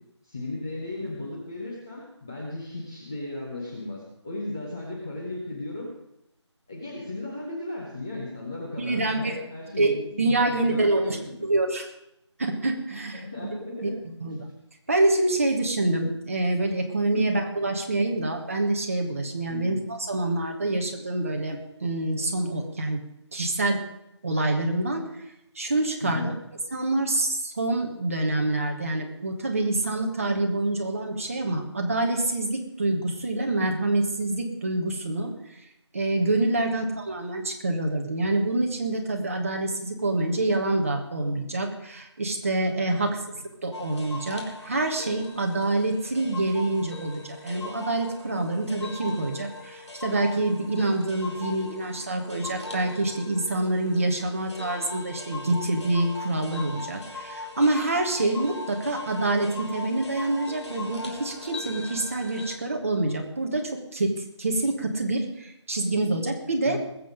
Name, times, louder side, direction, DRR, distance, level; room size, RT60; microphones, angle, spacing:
voice 1, 0.2-5.9 6.7-11.5 13.1-14.0 17.1-17.3 19.5-19.7 26.0-26.3 36.6-36.8 42.8-43.2 66.7-66.8, left 2 dB, 5° left, -6 dB, 0.7 m, -36 dB
voice 2, 8.8-9.4 9.8-11.9 12.4-13.5 13.8-13.9 14.2-14.5 14.9-23.0 23.3-23.8 24.2-25.0 25.5-26.3 26.7-35.3 35.9-66.8, right 2 dB, 30° right, 3 dB, 1.5 m, -26 dB
sound 1, 43.7-62.6, left 3 dB, 65° left, 2.8 m, -40 dB
20.5 x 7.8 x 5.2 m, 0.81 s
figure-of-eight pair, 170°, 15 cm